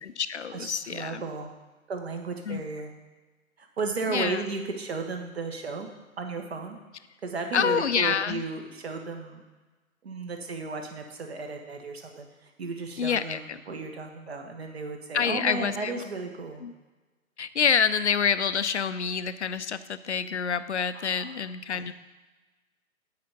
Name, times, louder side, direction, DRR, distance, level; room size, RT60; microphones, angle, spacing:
voice 1, 0.0-1.2 2.5-2.6 4.1-4.4 7.5-8.4 13.0-13.6 15.1-15.9 16.6-16.7 17.4-21.9, left 7 dB, 55° left, 13 dB, 0.6 m, -27 dB
voice 2, 0.5-1.5 1.9-2.9 3.6-5.9 6.2-6.8 7.2-9.4 10.0-16.6 20.9-21.4 21.7-21.9, right 4 dB, 45° right, 4 dB, 1.4 m, -34 dB
9.5 x 5.0 x 6.6 m, 1.2 s
figure-of-eight pair, 135°, 42 cm